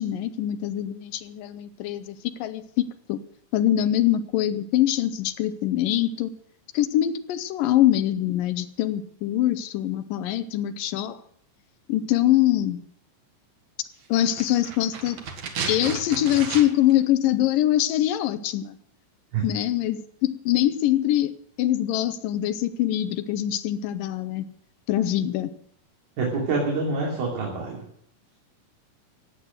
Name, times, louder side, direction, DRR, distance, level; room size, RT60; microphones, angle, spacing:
voice 1, 0.0-3.2 3.5-6.3 6.7-11.2 11.9-12.8 14.1-15.2 15.7-18.8 19.4-24.4 24.9-25.5, left 12 dB, 75° left, 12 dB, 2.4 m, -24 dB
sound 1, 14.1-17.0 17.2-17.3, right 5 dB, 55° right, 2.9 m, -34 dB
voice 2, 26.2-27.8, right 3 dB, 85° right, -2 dB, 4.9 m, -26 dB
16.5 x 8.6 x 7.8 m, 0.68 s
omnidirectional pair, 4.2 m